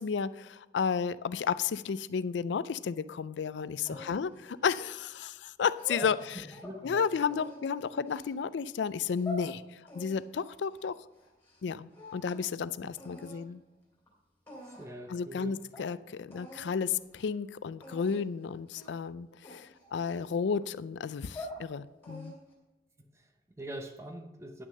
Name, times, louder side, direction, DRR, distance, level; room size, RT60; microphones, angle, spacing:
voice 1, 0.0-6.5 6.8-10.9 11.6-13.6 15.1-22.4, left 6 dB, 80° left, 16 dB, 0.4 m, -32 dB
voice 2, 3.8-4.2 6.3-7.1 13.2-13.4 14.6-15.6 23.0-24.6, right 1 dB, 15° right, 4 dB, 0.8 m, -44 dB
sound 1, 3.9-5.2 5.7-6.8 7.3-8.3 8.9-9.5 9.9-11.6 11.9-12.5 13.0-13.4 14.1-14.2 14.5-15.0 15.4-15.5 15.7-15.9 16.3-16.7 17.0-17.3 17.8-18.2 18.7-19.0 19.4-20.6 21.1-21.6 22.0-22.5, left 1 dB, 10° left, 2.7 m, -45 dB
10.0 x 6.2 x 6.5 m, 1.0 s
head